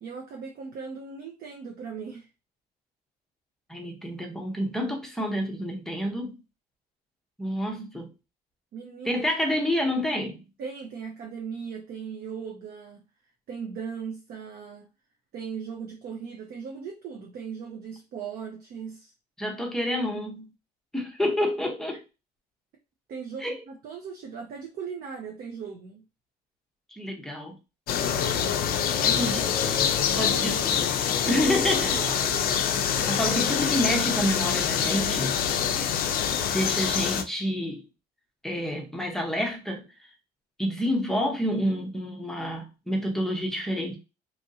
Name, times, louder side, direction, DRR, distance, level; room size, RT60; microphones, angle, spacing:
voice 1, 0.0-2.3 7.6-7.8 8.7-9.2 10.6-13.0 13.5-14.9 15.3-19.1 23.1-26.0 28.9-29.3 30.2-30.7 31.2-32.6, right 6 dB, 55° right, 0.6 m, -38 dB
voice 2, 3.7-6.4 7.4-8.1 9.0-10.4 19.4-20.5 20.9-22.0 23.4-23.5 26.9-27.6 29.0-29.5 30.2-30.9 31.3-32.0 33.1-35.4 36.5-37.8 38.4-39.9 40.6-44.0, equal, ahead, 0.6 m, -28 dB
sound 1, 27.9-37.2, left 8 dB, 55° left, 0.4 m, -25 dB
3.0 x 2.6 x 2.6 m
cardioid pair, 135°, 18 cm